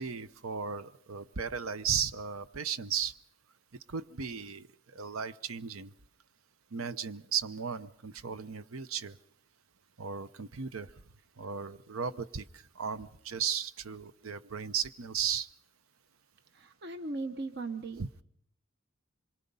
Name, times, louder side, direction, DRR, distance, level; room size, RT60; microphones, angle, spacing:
voice 1, 0.0-3.1 3.9-5.9 6.7-9.2 10.0-10.9 11.4-15.5 18.0-18.1, right 7 dB, 85° right, 14 dB, 0.8 m, -35 dB
voice 2, 16.5-18.2, right 3 dB, 55° right, 8 dB, 0.9 m, -38 dB
26.5 x 23.0 x 5.5 m, 0.71 s
head